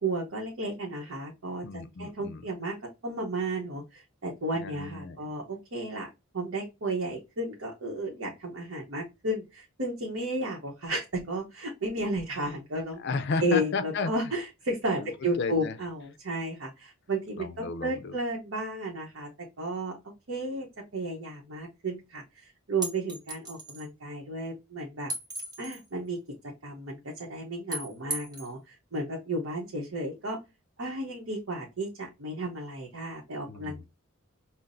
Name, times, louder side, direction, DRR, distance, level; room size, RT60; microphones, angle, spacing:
voice 1, 0.0-1.6 2.0-2.7 3.0-6.1 6.3-13.0 13.4-19.3 19.6-20.0 20.3-20.7 20.9-25.1 25.6-26.2 26.6-30.4 30.8-33.8, right 1 dB, 65° right, 0.9 m, -33 dB
voice 2, 1.6-2.5 4.5-5.3 13.0-14.1 15.0-15.1 15.4-15.8 17.4-18.2 33.5-33.8, left 4 dB, 55° left, 0.4 m, -33 dB
sound 1, 22.8-23.9 25.1-25.9 27.7-28.5, right 1 dB, 20° right, 1.1 m, -36 dB
5.7 x 2.0 x 2.5 m
head